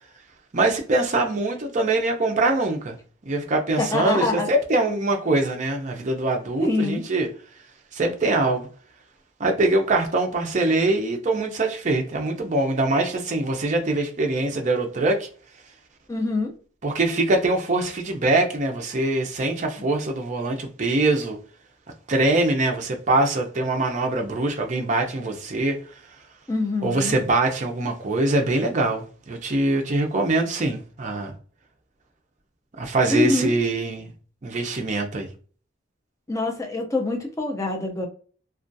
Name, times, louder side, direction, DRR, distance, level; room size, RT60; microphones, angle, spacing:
voice 1, 0.5-3.0 3.3-7.3 7.9-8.7 9.4-15.3 16.8-21.4 22.1-25.8 26.8-31.3 32.8-34.1 34.4-35.3, right 2 dB, 40° right, 0.5 m, -23 dB
voice 2, 3.8-4.5 6.6-7.0 16.1-16.5 19.8-19.9 26.5-27.2 33.1-33.5 36.3-38.1, left 2 dB, 15° left, 0.4 m, -25 dB
2.4 x 2.2 x 2.5 m
head